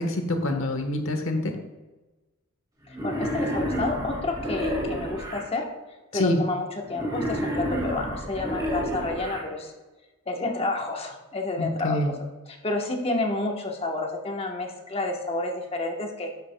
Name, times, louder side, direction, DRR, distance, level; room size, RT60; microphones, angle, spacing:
voice 1, 0.0-1.5 6.1-6.4 11.6-12.2, left 1 dB, 65° left, 5 dB, 1.2 m, -26 dB
Wild animals, 2.9-5.4 6.9-9.4, equal, 20° right, 1.8 m, -29 dB
voice 2, 3.0-5.7 6.1-9.7 10.3-12.1 12.5-16.3, left 2 dB, 30° left, 1 dB, 1.1 m, -30 dB
10.5 x 8.0 x 2.2 m, 1.2 s
head